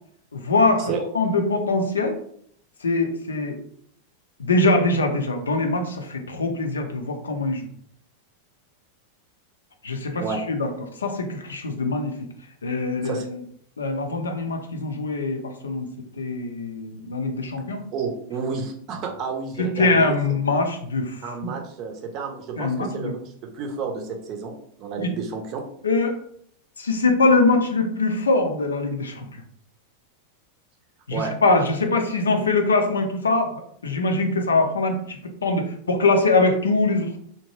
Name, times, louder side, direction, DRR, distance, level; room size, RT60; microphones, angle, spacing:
voice 1, 0.3-2.1 2.8-3.6 4.4-7.7 9.8-10.7 11.0-12.3 12.6-13.4 13.8-15.9 16.2-17.8 19.6-21.5 22.6-23.1 25.0-25.1 25.8-26.1 26.8-29.3 31.1-37.2, left 3 dB, 70° left, 5 dB, 0.5 m, -23 dB
voice 2, 17.9-20.1 21.2-23.2 23.5-24.5 24.8-25.6 31.1-31.6, right 5 dB, 40° right, 3 dB, 0.6 m, -30 dB
2.8 x 2.1 x 3.1 m, 0.64 s
figure-of-eight pair, 90°, 0 cm